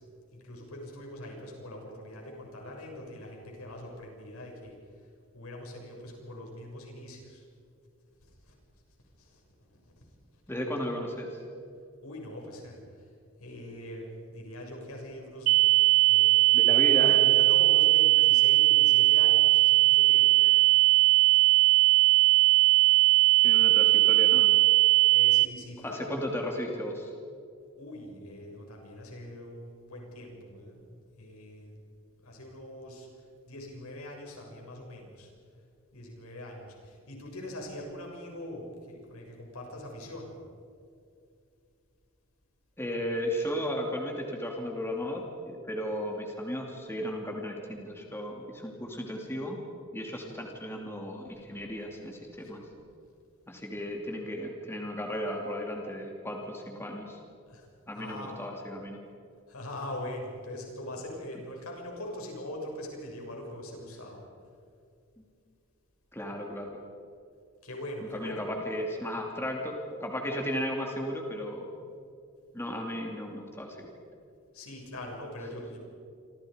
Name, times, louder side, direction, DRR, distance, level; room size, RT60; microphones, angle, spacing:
voice 1, 0.3-4.8 5.3-7.4 8.2-8.5 9.2-9.9 12.0-13.1 13.4-16.5 17.3-20.3 25.1-26.2 27.8-31.8 32.1-33.1 33.4-35.3 35.9-40.4 57.5-57.7 57.9-58.5 59.5-64.2 67.6-68.4 74.5-75.8, left 1 dB, 90° left, 0 dB, 6.7 m, -42 dB
voice 2, 10.5-11.3 16.5-17.3 23.4-24.6 25.8-27.1 42.8-49.6 49.9-52.6 53.5-57.2 57.9-59.0 65.2-65.3 66.1-66.7 68.0-71.7 72.5-73.9, equal, 10° left, 1 dB, 2.8 m, -35 dB
sound 1, 15.5-25.5, right 17 dB, 65° right, 0.6 m, -20 dB
28.0 x 26.0 x 5.2 m, 2.5 s
head